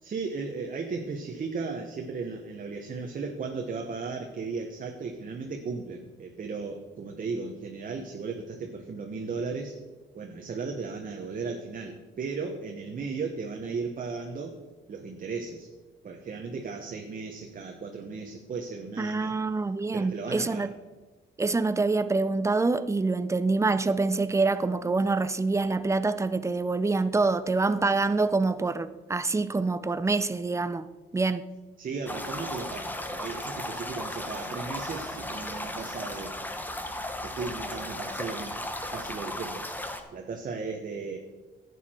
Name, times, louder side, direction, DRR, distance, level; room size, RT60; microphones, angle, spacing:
voice 1, 0.0-9.7 10.1-14.6 14.9-15.7 16.0-19.4 19.9-20.7 31.8-36.4 37.2-38.6 38.9-39.6 40.1-41.2, right 4 dB, 45° right, 1.1 m, -36 dB
voice 2, 19.0-20.7 21.4-30.9 31.1-31.4, right 3 dB, 15° right, 0.6 m, -26 dB
sound 1, 32.1-40.0, left 1 dB, 10° left, 1.1 m, -36 dB
11.0 x 8.3 x 4.4 m
cardioid pair, 90°, 20 cm